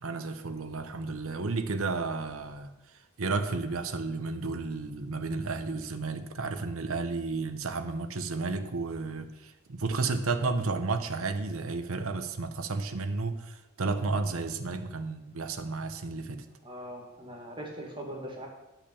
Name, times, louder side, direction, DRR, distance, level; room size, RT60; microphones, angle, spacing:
voice 1, 0.0-2.7 3.2-16.4, right 3 dB, 65° right, 8 dB, 0.9 m, -32 dB
voice 2, 16.6-18.5, right 1 dB, 20° right, -1 dB, 2.0 m, -41 dB
10.0 x 5.9 x 7.0 m, 1.0 s
head